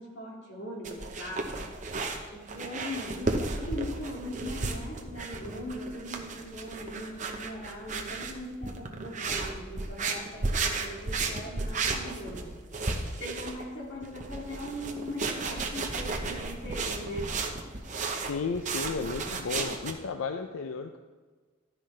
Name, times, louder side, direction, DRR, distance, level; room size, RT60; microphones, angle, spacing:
voice 1, 0.0-1.7 2.3-12.5 13.2-17.3, equal, 55° left, -2 dB, 2.3 m, -40 dB
sound 1, 0.8-19.9, right 3 dB, 35° right, 0.9 m, -34 dB
voice 2, 18.2-21.0, left 5 dB, 85° left, 7 dB, 0.5 m, -33 dB
12.0 x 10.0 x 3.3 m, 1.4 s
head